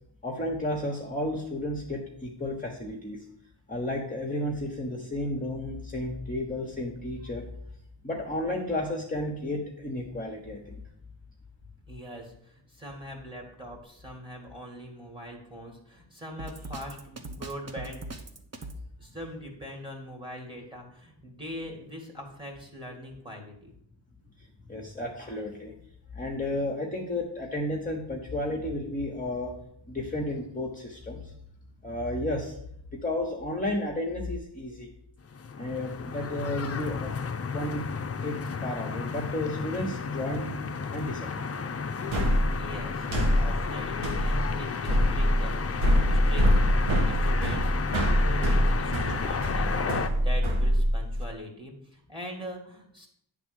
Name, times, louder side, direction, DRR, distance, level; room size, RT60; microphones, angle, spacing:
voice 1, 0.2-3.3 3.7-7.5 8.0-10.8 24.4-25.7 26.1-29.6 29.9-31.3 31.8-32.6 33.0-34.9 35.6-37.9 38.2-40.5 40.9-41.5, left 1 dB, 20° left, -1 dB, 1.2 m, -32 dB
voice 2, 11.9-18.0 19.0-23.7 42.6-43.1 43.4-46.5 46.9-53.1, equal, 10° right, 0 dB, 1.9 m, -42 dB
Drum kit, 16.4-18.8, right 2 dB, 35° right, 0.9 m, -39 dB
sound 1, 35.3-50.1, left 5 dB, 35° left, 0.5 m, -33 dB
sound 2, 42.1-51.2, equal, 90° right, 1.6 m, -24 dB
9.2 x 3.7 x 6.4 m, 0.71 s
wide cardioid pair, 100°, 46 cm